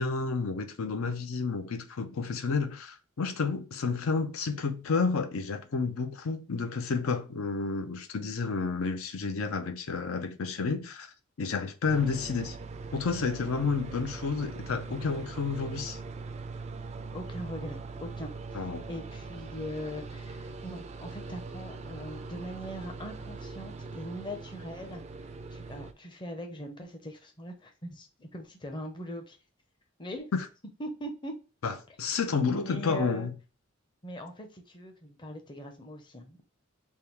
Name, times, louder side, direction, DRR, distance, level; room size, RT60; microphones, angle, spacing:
voice 1, 0.0-12.6 12.9-16.0 18.5-18.9 30.3-30.4 31.6-33.3, left 4 dB, 80° left, 0.5 m, -30 dB
sound 1, 11.8-25.9, right 4 dB, 30° right, 0.3 m, -41 dB
voice 2, 17.1-29.4 30.0-30.3 30.8-31.3 32.5-33.3 34.0-36.4, equal, 20° left, 0.6 m, -41 dB
3.6 x 2.3 x 4.4 m
head